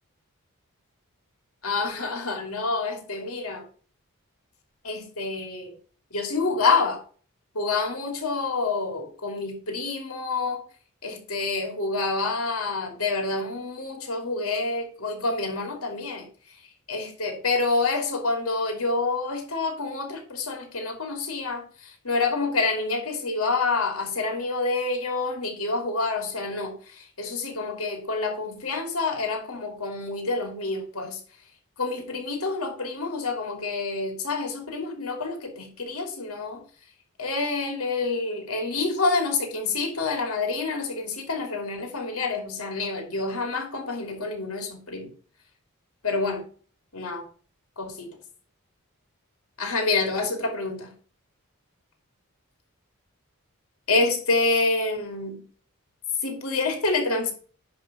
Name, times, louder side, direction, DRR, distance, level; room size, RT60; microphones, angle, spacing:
voice 1, 1.6-3.6 4.8-5.7 6.1-7.0 7.5-10.6 11.0-16.2 16.9-31.2 31.8-36.6 37.2-45.1 46.0-46.4 46.9-47.2 47.8-48.1 49.6-50.9 53.9-55.4 56.2-57.3, left 3 dB, 75° left, 3 dB, 2.8 m, -27 dB
10.5 x 3.6 x 6.7 m, 0.42 s
head